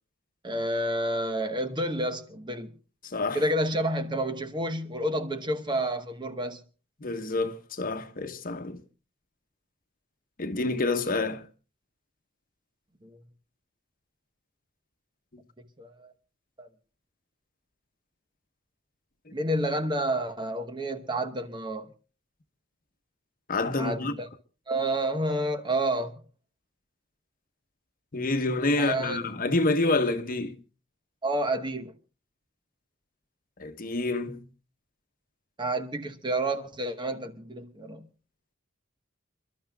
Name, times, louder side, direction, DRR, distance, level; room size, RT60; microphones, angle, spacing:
voice 1, 0.4-2.7 3.3-6.6 13.0-13.2 15.8-16.1 16.6-16.7 19.3-21.9 23.8-24.3 24.7-26.1 28.8-29.2 31.2-31.9 35.6-38.1, right 1 dB, 25° right, 1.0 m, -29 dB
voice 2, 3.0-3.4 7.0-8.8 10.4-11.4 23.5-24.1 28.1-30.6 33.6-34.4, left 2 dB, 45° left, 1.1 m, -28 dB
29.0 x 12.0 x 2.3 m
head